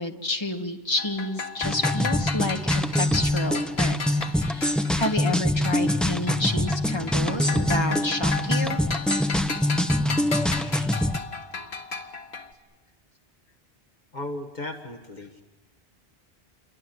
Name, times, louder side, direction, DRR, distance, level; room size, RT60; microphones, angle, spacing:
voice 1, 0.0-8.8 10.6-10.9, left 2 dB, 25° left, 3 dB, 1.9 m, -30 dB
sound 1, 1.0-6.0 6.3-12.5, left 4 dB, 85° left, 1.9 m, -34 dB
sound 2, 1.6-11.2, left 1 dB, ahead, 0.6 m, -24 dB
voice 2, 14.1-15.4, left 1 dB, 45° left, 4 dB, 1.7 m, -35 dB
29.0 x 23.0 x 8.1 m, 1.2 s
omnidirectional pair, 1.0 m